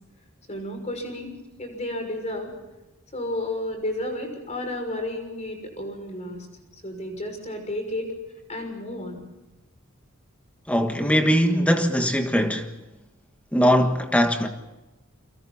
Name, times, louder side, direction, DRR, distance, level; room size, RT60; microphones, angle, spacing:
voice 1, 0.5-1.3 1.6-2.5 3.1-6.5 6.8-8.1 8.5-9.2, left 1 dB, 35° left, 6.3 m, -32 dB
voice 2, 10.7-12.7 13.5-14.5, equal, 5° left, 1.5 m, -21 dB
29.5 x 24.5 x 4.2 m
head